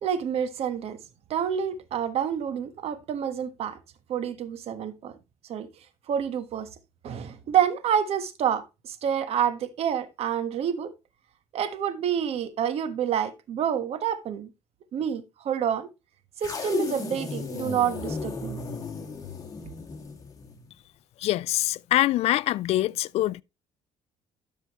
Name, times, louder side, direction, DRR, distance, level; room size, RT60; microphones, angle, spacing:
voice 1, 0.0-1.0 1.3-3.8 4.1-5.1 5.5-5.7 6.1-6.7 7.0-10.9 11.5-14.5 14.9-15.9 16.4-18.6, right 8 dB, 60° right, 1.5 m, -28 dB
sound 1, 16.4-20.7, left 5 dB, 30° left, 2.5 m, -34 dB
voice 2, 21.2-23.4, left 15 dB, 65° left, 0.4 m, -24 dB
13.0 x 5.5 x 3.1 m
cardioid pair, 100°, 12 cm